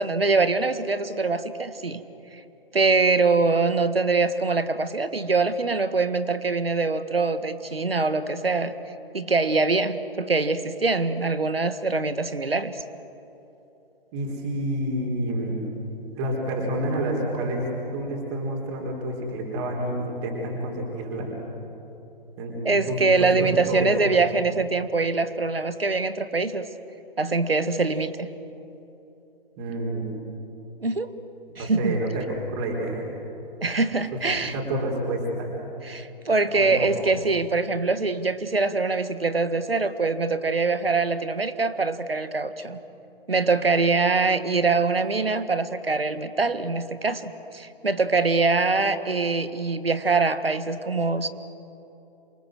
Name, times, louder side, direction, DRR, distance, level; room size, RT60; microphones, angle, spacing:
voice 1, 0.0-2.0 2.7-8.7 9.1-12.8 22.7-26.7 27.2-28.3 30.8-31.1 31.6-32.0 33.6-34.6 35.9-42.8 43.3-51.3, right 3 dB, 80° right, 11 dB, 1.6 m, -23 dB
voice 2, 14.1-15.6 16.2-21.3 22.4-22.6 22.9-23.8 29.6-30.1 31.6-32.2 32.6-33.1 34.5-35.5 36.5-36.9, right 1 dB, 30° right, -1 dB, 4.3 m, -28 dB
27.5 x 23.5 x 7.7 m, 3.0 s
figure-of-eight pair, 130°, 29 cm